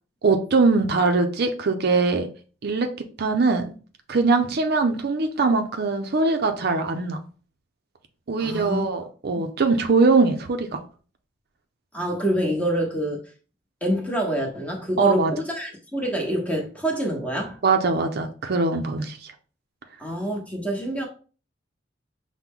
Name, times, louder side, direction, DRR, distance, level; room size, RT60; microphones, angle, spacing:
voice 1, 0.2-2.3 2.6-2.9 3.2-3.7 4.1-7.2 8.3-10.8 15.0-15.3 17.6-19.3, right 3 dB, 55° right, 0.5 m, -22 dB
voice 2, 8.4-8.8 9.3-9.4 11.9-13.2 13.8-17.6 20.0-21.1, right 1 dB, 10° left, 1.0 m, -26 dB
5.9 x 2.1 x 3.6 m
head